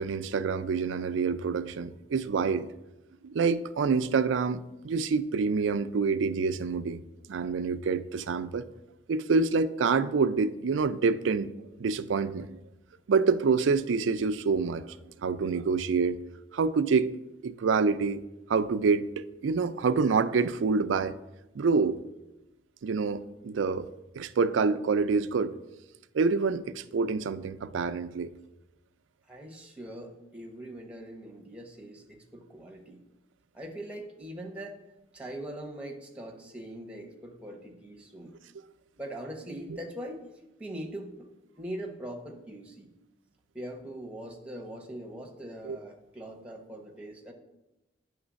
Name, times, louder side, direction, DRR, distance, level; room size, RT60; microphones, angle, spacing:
voice 1, 0.0-2.7 3.2-7.0 7.3-8.6 9.1-11.5 11.8-12.6 13.1-14.9 15.2-16.2 16.5-17.1 17.4-18.2 18.5-21.1 21.5-22.0 22.8-23.9 24.1-25.5 26.1-28.3 45.6-45.8, right 4 dB, 85° right, 12 dB, 0.4 m, -27 dB
voice 2, 29.3-33.0 33.5-34.8 35.1-38.3 39.0-40.2 40.6-41.3 41.6-42.9 43.5-47.3, right 1 dB, 5° right, 1 dB, 0.9 m, -41 dB
9.6 x 3.2 x 6.2 m, 0.96 s
head